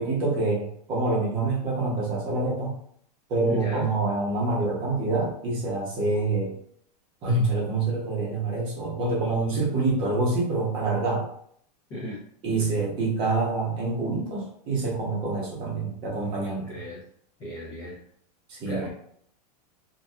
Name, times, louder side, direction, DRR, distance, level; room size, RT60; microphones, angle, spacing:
voice 1, 0.0-2.7 3.3-6.6 7.2-11.3 12.4-16.7 18.5-18.9, right 3 dB, 25° right, -3 dB, 0.7 m, -26 dB
voice 2, 3.5-4.0 11.9-12.2 16.7-17.1 17.4-18.0 18.7-18.9, left 1 dB, 20° left, -6 dB, 0.3 m, -35 dB
2.7 x 2.2 x 2.2 m, 0.64 s
supercardioid pair, 170°, 21 cm